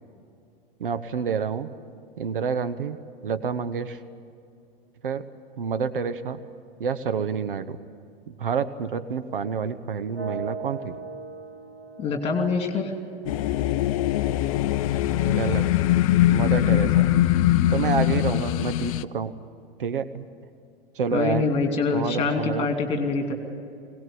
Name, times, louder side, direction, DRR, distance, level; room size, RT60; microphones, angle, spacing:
voice 1, 0.8-1.7 2.2-4.0 5.0-5.3 5.6-6.4 6.8-7.8 8.3-11.0 15.2-15.7 16.3-17.1 17.7-19.3 19.8-20.3 20.9-21.4 21.9-22.7, right 6 dB, 65° right, 11 dB, 0.9 m, -28 dB
sound 1, 10.1-14.1, right 3 dB, 80° right, 2.4 m, -39 dB
voice 2, 12.0-12.9 21.1-23.3, left 4 dB, 20° left, 5 dB, 2.8 m, -25 dB
sound 2, 13.3-19.0, left 13 dB, 35° left, 0.5 m, -22 dB
22.0 x 18.0 x 9.8 m, 2.4 s
figure-of-eight pair, 100°, 29 cm